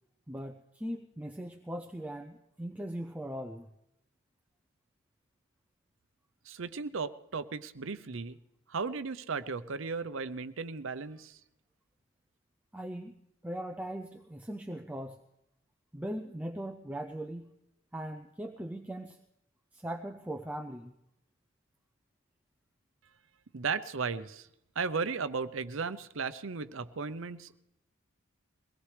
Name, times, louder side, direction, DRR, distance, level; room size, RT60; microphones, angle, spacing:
voice 1, 0.3-3.7 12.7-13.2 13.4-15.2 15.9-17.5 17.9-19.2 19.7-20.9, right 1 dB, 5° right, 3 dB, 0.5 m, -39 dB
voice 2, 6.5-8.4 8.7-11.4 23.5-24.5 24.8-27.6, right 5 dB, 70° right, 12 dB, 0.7 m, -35 dB
22.5 x 17.5 x 3.3 m, 0.83 s
head